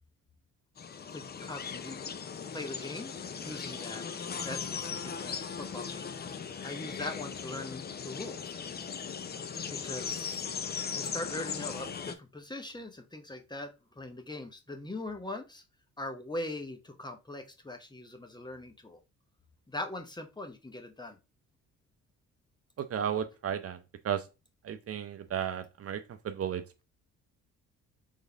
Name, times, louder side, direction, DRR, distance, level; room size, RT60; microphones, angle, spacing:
sound 1, 0.8-12.1, left 6 dB, 35° left, 0.6 m, -38 dB
voice 1, 1.1-2.2 2.5-4.0 4.3-8.6 9.7-10.5 10.9-15.6 16.0-19.0 19.7-21.2, left 2 dB, 15° left, 0.9 m, -41 dB
voice 2, 22.8-23.8 24.0-24.2 24.6-26.8, right 9 dB, 50° right, 0.7 m, -34 dB
3.9 x 3.7 x 3.4 m
cardioid pair, 90°, 30 cm